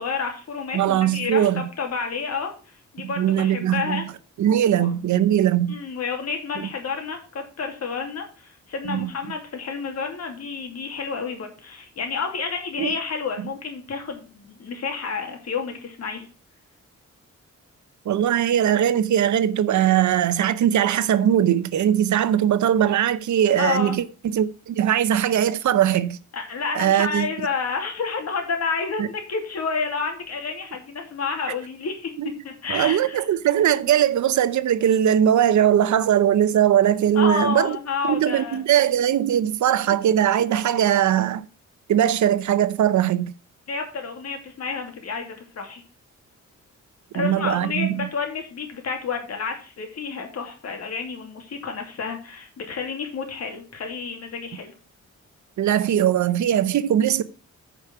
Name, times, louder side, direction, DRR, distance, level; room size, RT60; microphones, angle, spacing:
voice 1, 0.0-4.1 4.7-4.9 5.7-16.3 23.6-24.0 26.3-32.1 32.4-33.2 37.1-38.6 43.7-45.8 47.1-54.7, left 5 dB, 60° left, 2.5 m, -30 dB
voice 2, 0.7-1.7 3.0-4.1 4.4-5.8 6.6-6.7 8.9-9.1 12.8-12.9 18.1-26.2 26.7-27.3 29.0-29.1 32.2-32.3 32.7-37.8 38.1-41.5 41.9-43.3 47.1-48.1 55.6-57.2, right 10 dB, 75° right, 0.7 m, -20 dB
9.3 x 5.1 x 5.9 m
wide cardioid pair, 170°, 30 cm